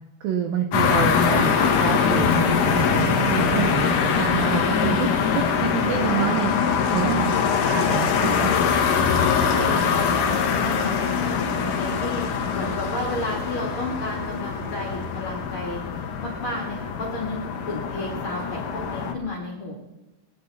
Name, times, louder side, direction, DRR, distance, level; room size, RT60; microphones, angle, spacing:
voice 1, 0.2-5.1 5.3-6.5 6.9-7.3 7.6-8.5, right 9 dB, 90° right, 5 dB, 2.0 m, -27 dB
sound 1, 0.7-19.1, left 6 dB, 80° left, 1.8 m, -23 dB
voice 2, 7.0-7.5 9.1-12.2 12.5-15.8 16.2-17.4 17.7-19.7, left 1 dB, 45° left, -2 dB, 1.8 m, -32 dB
22.5 x 9.4 x 4.1 m, 1.0 s
omnidirectional pair, 5.5 m